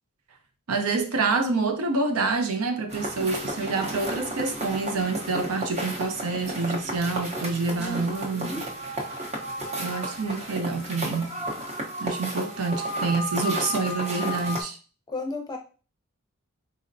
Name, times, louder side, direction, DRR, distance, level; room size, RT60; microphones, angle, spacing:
voice 1, 0.7-8.5 9.8-11.4 12.0-14.8, right 3 dB, 85° right, 0.6 m, -27 dB
sound 1, 2.9-14.6, right 1 dB, 30° right, 0.7 m, -32 dB
voice 2, 7.8-8.6 15.1-15.6, left 1 dB, 20° left, 0.5 m, -34 dB
3.9 x 2.1 x 2.5 m
head